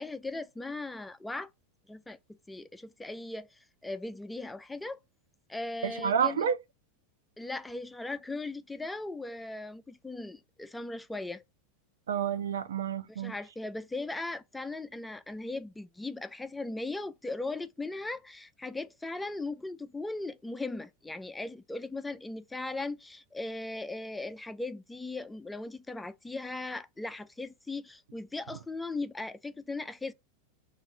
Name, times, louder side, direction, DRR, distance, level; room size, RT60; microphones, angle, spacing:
voice 1, 0.0-1.5 1.9-2.2 2.5-5.0 5.5-6.5 7.4-11.4 13.1-30.1, left 2 dB, 10° left, 0.4 m, -38 dB
voice 2, 5.8-6.6 12.1-13.3, right 8 dB, 75° right, 0.5 m, -29 dB
5.7 x 2.5 x 2.6 m
hypercardioid pair, 95°, 0 cm